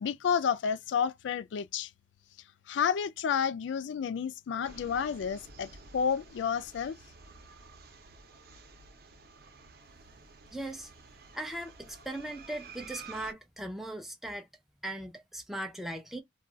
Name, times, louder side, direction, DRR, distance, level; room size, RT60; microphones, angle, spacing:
voice 1, 0.0-1.9 2.7-7.0, left 7 dB, 70° left, 0.3 m, -30 dB
sound 1, 4.6-13.3, right 4 dB, 55° right, 0.6 m, -51 dB
voice 2, 10.5-10.9 11.3-14.5 14.8-16.2, right 1 dB, ahead, 0.4 m, -39 dB
2.3 x 2.2 x 3.8 m
head